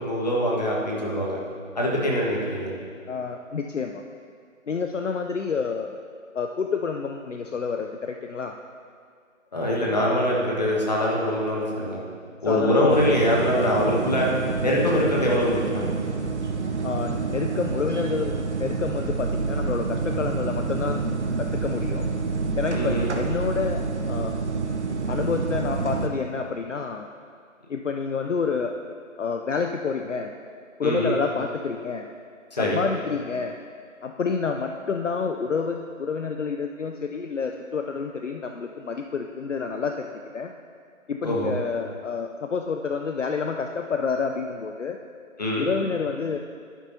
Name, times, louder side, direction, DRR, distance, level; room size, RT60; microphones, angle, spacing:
voice 1, 0.0-1.4 1.7-2.7 9.5-12.0 12.4-14.3 14.6-15.9 22.7-23.1 30.8-31.1 32.5-32.8 41.2-41.5 45.4-45.7, left 1 dB, 30° left, -3 dB, 1.4 m, -23 dB
voice 2, 3.1-4.0 4.7-5.9 6.3-8.5 12.5-12.9 16.8-21.0 21.4-22.1 22.6-23.8 24.1-24.4 25.1-27.1 27.7-28.7 29.2-30.3 30.8-32.1 32.5-33.5 34.0-40.5 41.1-45.0 45.6-46.4, left 5 dB, 65° left, 4 dB, 0.6 m, -28 dB
sound 1, 12.9-26.1, right 4 dB, 55° right, 0.9 m, -28 dB
11.0 x 10.0 x 2.7 m, 2.1 s
figure-of-eight pair, 165°, 41 cm